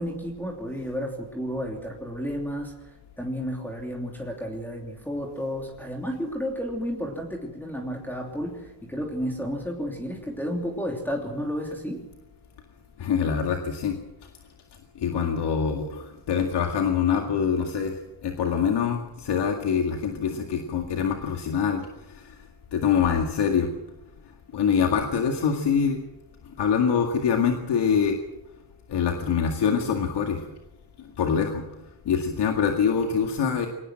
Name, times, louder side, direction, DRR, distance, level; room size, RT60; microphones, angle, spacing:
voice 1, 0.0-12.0, equal, 5° left, 0 dB, 3.1 m, -32 dB
voice 2, 13.0-14.0 15.0-18.0 18.2-21.8 22.1-22.2 22.7-23.7 24.5-26.0 26.6-28.2 28.9-30.4 31.2-31.6 32.1-33.7, left 7 dB, 85° left, 3 dB, 2.1 m, -24 dB
23.0 x 18.5 x 7.5 m, 0.95 s
wide cardioid pair, 140°, 40 cm